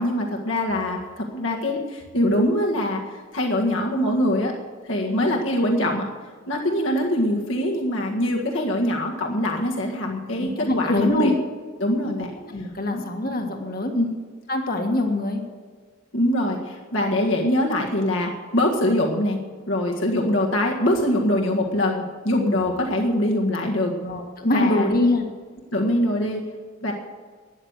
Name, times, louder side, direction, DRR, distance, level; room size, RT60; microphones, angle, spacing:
voice 1, 0.0-4.5 4.8-6.0 6.5-11.3 11.8-12.3 12.9-13.0 13.9-14.1 16.1-19.4 19.7-23.9 24.5-24.9 25.7-26.4 26.8-26.9, left 1 dB, 65° left, 0 dB, 1.7 m, -23 dB
voice 2, 5.0-5.4 10.4-11.4 12.0-13.9 14.5-15.4 22.4-22.5 24.0-25.3, left 2 dB, 45° left, 3 dB, 1.6 m, -24 dB
13.0 x 10.0 x 8.1 m, 1.5 s
head